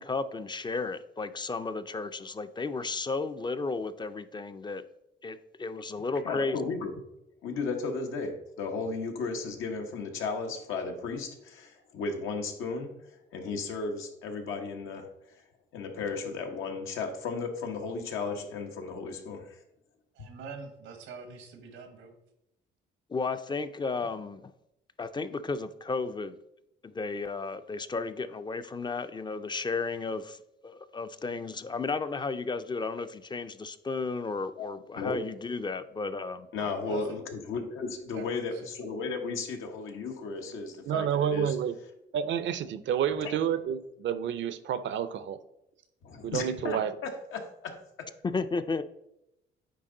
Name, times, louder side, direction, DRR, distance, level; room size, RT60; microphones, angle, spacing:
voice 1, 0.0-4.8 5.2-6.7 23.1-24.5 25.0-26.4 26.8-30.4 30.6-36.5 48.2-48.8, left 4 dB, 20° left, 11 dB, 0.4 m, -33 dB
voice 2, 6.2-6.9 7.4-12.9 13.3-15.1 15.7-19.5 20.2-20.3 34.6-34.7 35.0-35.2 36.5-41.6 46.0-48.1, left 4 dB, 85° left, 4 dB, 1.2 m, -35 dB
voice 3, 20.1-22.1 36.6-37.2 38.1-38.7, right 5 dB, 90° right, 7 dB, 1.3 m, -44 dB
voice 4, 40.9-41.8 42.1-45.4 46.2-46.9, right 9 dB, 70° right, 13 dB, 0.6 m, -29 dB
9.4 x 3.5 x 3.8 m, 0.85 s
cardioid pair, 90°, 20 cm